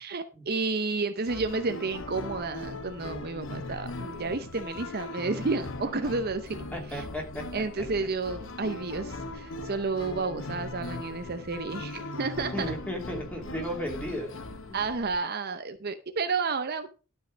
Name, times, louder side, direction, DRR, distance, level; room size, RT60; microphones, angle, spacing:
voice 1, 0.0-6.6 6.9-7.0 7.5-12.7 14.7-16.9, right 4 dB, 45° right, 9 dB, 0.7 m, -31 dB
sound 1, 1.3-15.2, left 2 dB, 60° left, 1.1 m, -39 dB
voice 2, 4.0-4.5 6.0-6.1 6.7-7.6 12.5-14.3 14.7-14.8, equal, 5° left, 2 dB, 2.7 m, -35 dB
12.0 x 5.6 x 5.2 m, 0.34 s
head